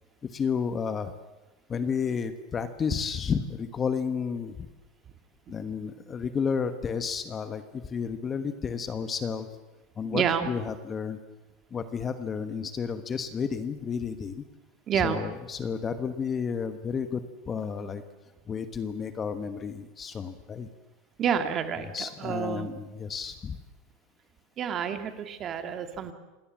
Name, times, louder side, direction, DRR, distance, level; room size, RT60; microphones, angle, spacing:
voice 1, 0.2-1.1 1.7-4.7 5.5-9.5 10.0-11.2 11.7-14.4 14.9-18.0 18.5-20.7 21.9-23.6, left 6 dB, 20° left, 10 dB, 1.2 m, -31 dB
voice 2, 10.1-10.5 14.9-15.2 21.2-22.7 24.6-26.1, right 8 dB, 30° right, 8 dB, 2.1 m, -29 dB
27.0 x 19.5 x 7.4 m, 1.1 s
supercardioid pair, 155°, 0 cm